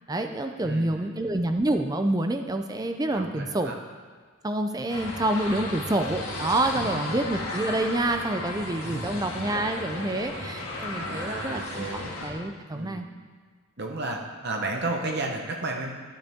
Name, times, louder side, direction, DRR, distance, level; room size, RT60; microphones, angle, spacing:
voice 1, 0.1-3.7 4.4-13.1, right 1 dB, 15° right, 6 dB, 0.5 m, -28 dB
voice 2, 0.6-1.3 3.2-3.8 6.7-7.2 8.8-9.2 10.9-12.1 12.7-13.1 13.8-15.9, right 2 dB, 45° right, 1 dB, 1.0 m, -33 dB
sound 1, 4.9-12.3, left 2 dB, 70° left, 2.3 m, -34 dB
14.5 x 8.8 x 3.6 m, 1.5 s
head